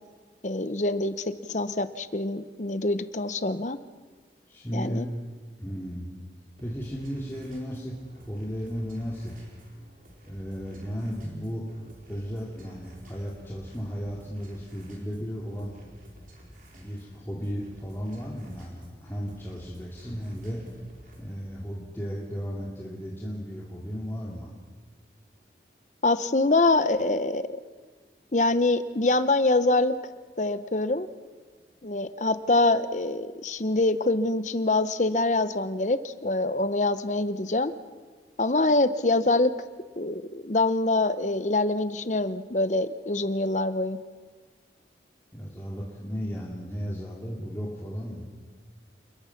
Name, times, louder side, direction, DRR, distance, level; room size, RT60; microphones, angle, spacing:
voice 1, 0.4-3.8 4.7-5.1 26.0-27.5 28.3-30.0 30.4-31.1 31.8-37.7 38.4-39.5 40.0-44.0, left 2 dB, 40° left, 13 dB, 0.9 m, -25 dB
voice 2, 4.5-5.1 5.6-6.1 6.6-9.4 10.2-11.6 12.1-15.7 16.8-20.6 21.2-24.5 45.3-48.3, equal, 15° left, -4 dB, 2.5 m, -35 dB
sound 1, 6.6-21.4, equal, 50° right, 4.8 m, -52 dB
29.0 x 21.5 x 5.9 m, 1.5 s
head